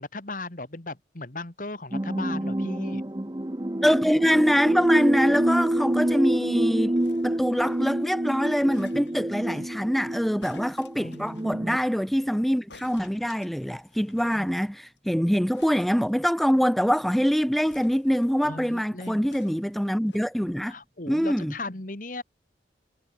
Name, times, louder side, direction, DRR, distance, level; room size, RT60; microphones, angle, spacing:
voice 1, 0.0-3.0 8.9-9.7 11.0-11.4 18.4-19.2 20.7-22.2, left 2 dB, 45° left, 1.9 m, -37 dB
sound 1, 1.9-11.8, right 1 dB, 20° right, 0.8 m, -27 dB
voice 2, 3.8-7.0 7.2-20.7 21.1-21.5, equal, ahead, 0.5 m, -24 dB
sound 2, 6.9-8.0 8.7-9.5 10.4-11.5 12.7-14.4 14.7-14.8 15.0-15.1 15.5-16.7 17.6-18.6 19.3-20.3 21.0-21.1, left 4 dB, 80° left, 5.4 m, -54 dB
head